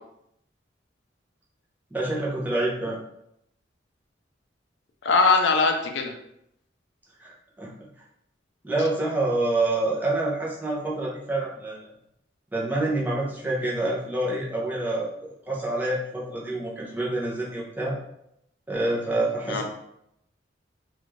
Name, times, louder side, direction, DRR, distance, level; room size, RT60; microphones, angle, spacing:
voice 1, 1.9-3.0 7.2-7.3 7.6-7.9 8.6-11.9 12.5-18.0 18.7-19.6, right 2 dB, 10° right, -5 dB, 0.6 m, -27 dB
voice 2, 5.0-6.1 19.5-19.6, left 4 dB, 75° left, 4 dB, 0.4 m, -21 dB
2.5 x 2.3 x 3.1 m, 0.78 s
head